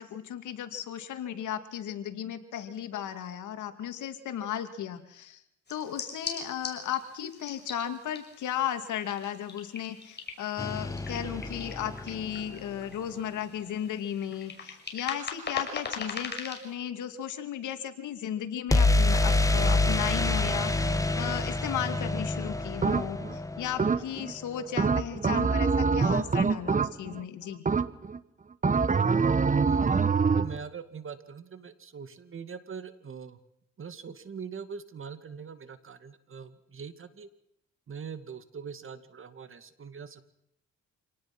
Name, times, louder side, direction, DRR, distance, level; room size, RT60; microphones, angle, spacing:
voice 1, 0.0-5.4 5.7-27.6, left 10 dB, 75° left, 8 dB, 2.6 m, -35 dB
sound 1, 5.7-16.7, left 4 dB, 35° left, 6.4 m, -41 dB
sound 2, 10.6-12.6 18.7-24.5, left 2 dB, 10° left, 1.8 m, -27 dB
sound 3, 22.8-23.3 23.8-24.3 24.8-27.2 27.7-28.2 28.6-30.6, right 5 dB, 25° right, 1.2 m, -25 dB
voice 2, 29.6-30.0 30.3-33.4 33.8-37.3 37.9-40.2, right 6 dB, 45° right, 11 dB, 2.3 m, -42 dB
27.0 x 19.0 x 6.2 m, 0.79 s
cardioid pair, 90°, 30 cm